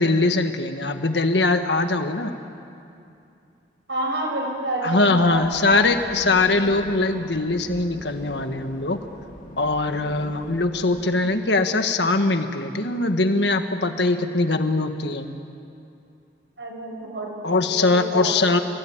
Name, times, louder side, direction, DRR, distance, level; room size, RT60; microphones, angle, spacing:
voice 1, 0.0-2.3 4.8-9.0 9.6-15.3 17.4-18.6, left 2 dB, 70° left, 7 dB, 1.6 m, -21 dB
voice 2, 3.9-5.9 16.6-18.3, right 1 dB, 75° right, 0 dB, 6.4 m, -29 dB
sound 1, 5.2-11.2, left 1 dB, 45° left, 2.4 m, -41 dB
29.5 x 18.5 x 9.0 m, 2.6 s
head